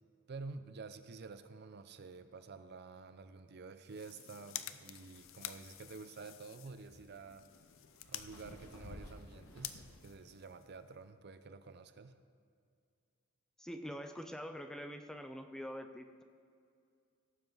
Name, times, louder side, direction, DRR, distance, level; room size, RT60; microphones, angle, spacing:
voice 1, 0.3-7.4 8.1-12.2, right 4 dB, 50° right, 11 dB, 0.5 m, -50 dB
sound 1, 3.8-11.1, left 12 dB, 65° left, 0.5 m, -50 dB
sound 2, 5.1-10.0, left 1 dB, 85° left, 1.7 m, -55 dB
voice 2, 13.6-16.2, equal, 5° left, 6 dB, 0.4 m, -45 dB
17.5 x 7.1 x 4.0 m, 2.3 s
head